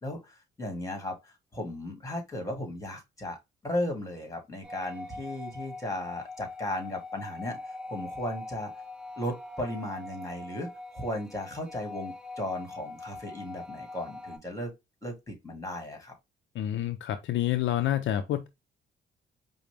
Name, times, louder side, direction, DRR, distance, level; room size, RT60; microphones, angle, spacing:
voice 1, 0.0-3.4 3.6-7.6 7.9-8.7 9.2-14.7 15.0-16.1, left 1 dB, 15° left, 1.8 m, -36 dB
sound 1, 4.6-14.4, left 2 dB, 5° right, 2.8 m, -42 dB
voice 2, 16.5-18.5, left 12 dB, 70° left, 0.5 m, -28 dB
4.9 x 2.1 x 3.3 m
cardioid pair, 90°, 20 cm